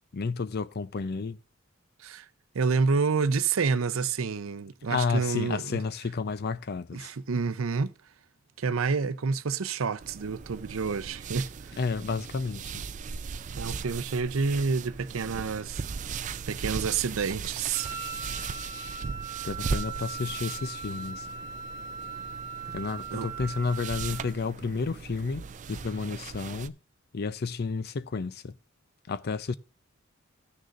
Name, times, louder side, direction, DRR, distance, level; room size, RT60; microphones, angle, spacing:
voice 1, 0.1-1.4 4.9-7.1 11.8-12.8 19.4-21.3 22.7-26.8 27.1-28.6 29.1-29.6, left 4 dB, 50° left, 0.5 m, -31 dB
voice 2, 2.5-5.8 6.9-7.9 8.6-11.8 13.6-15.9 16.5-17.9 23.1-23.3, right 5 dB, 90° right, 0.6 m, -28 dB
sound 1, 10.0-26.7, right 5 dB, 35° right, 0.4 m, -38 dB
Wind instrument woodwind instrument, 17.7-24.3, right 5 dB, 80° left, 1.1 m, -39 dB
15.5 x 6.4 x 2.4 m
head